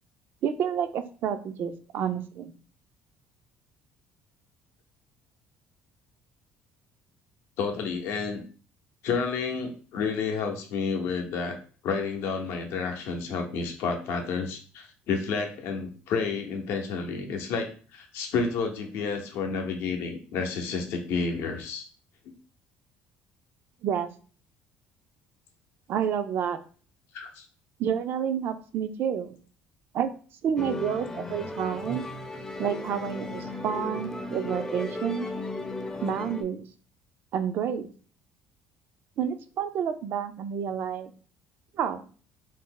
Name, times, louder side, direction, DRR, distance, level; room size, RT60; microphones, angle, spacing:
voice 1, 0.4-2.5 23.8-24.1 25.9-26.6 27.8-29.4 29.9-30.1 30.4-32.0 32.6-35.3 36.0-36.7 37.3-37.9 39.2-41.1 41.7-42.0, right 8 dB, 60° right, 9 dB, 0.3 m, -29 dB
voice 2, 7.6-8.4 9.0-11.6 11.8-21.9 27.1-27.4, left 5 dB, 75° left, 4 dB, 0.6 m, -30 dB
Musical instrument, 30.6-36.4, left 2 dB, 15° left, 0.4 m, -35 dB
2.6 x 2.0 x 3.6 m, 0.40 s
supercardioid pair, 85°, 4 cm